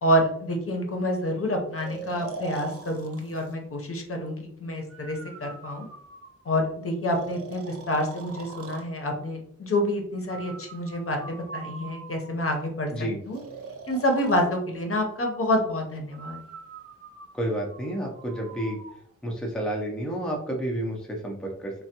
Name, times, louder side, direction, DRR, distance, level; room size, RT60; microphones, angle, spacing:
voice 1, 0.0-5.9 6.5-12.9 13.2-13.4 13.9-16.4, equal, 50° left, 2 dB, 0.7 m, -28 dB
Breathing, 1.8-3.6 4.9-6.6 7.1-8.9 10.3-12.5 13.3-14.5 16.1-19.0, right 5 dB, 55° right, 0.5 m, -42 dB
voice 2, 17.3-18.8 19.2-21.7, right 1 dB, ahead, -1 dB, 0.5 m, -30 dB
3.3 x 2.2 x 2.8 m, 0.67 s
wide cardioid pair, 140°, 30 cm